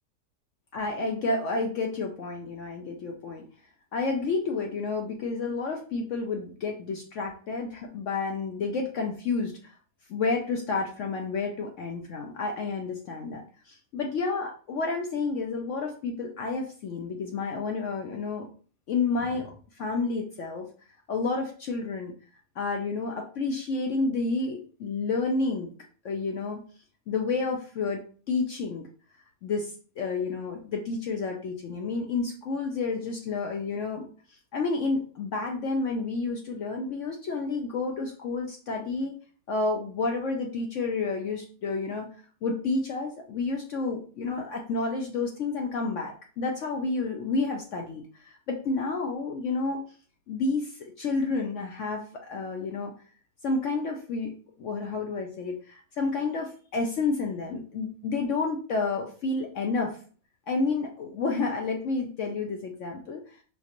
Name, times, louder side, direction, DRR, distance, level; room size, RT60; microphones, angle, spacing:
voice 1, 0.7-3.4 3.9-9.7 10.1-18.5 18.9-20.7 21.1-22.1 22.6-25.7 26.0-26.6 27.1-28.9 29.4-39.2 39.5-42.1 42.4-49.8 50.3-52.9 53.4-54.3 54.6-60.0 60.5-63.2, left 3 dB, 65° left, 2 dB, 0.8 m, -30 dB
5.1 x 2.5 x 2.9 m, 0.42 s
omnidirectional pair, 1.6 m